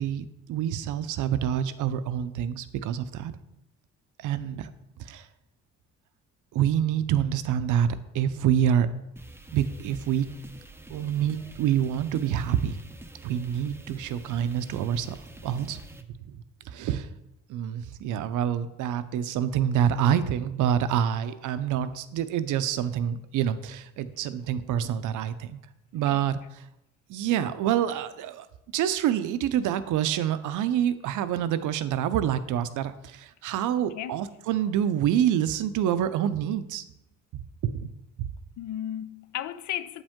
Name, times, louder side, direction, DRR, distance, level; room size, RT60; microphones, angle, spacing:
voice 1, 0.0-3.3 4.2-4.7 5.0-5.3 6.5-8.9 9.5-10.3 10.9-12.8 13.2-15.2 15.4-15.8 16.3-16.4 16.7-17.1 17.5-25.6 25.9-26.4 27.1-28.5 28.7-36.8 37.3-37.9 38.2-38.3, right 10 dB, 80° right, 0.6 m, -27 dB
sound 1, 9.2-16.0, right 2 dB, 10° right, 0.6 m, -47 dB
voice 2, 33.9-34.2 38.6-40.0, left 11 dB, 70° left, 0.5 m, -35 dB
8.1 x 5.1 x 3.6 m
cardioid pair, 90°, 30 cm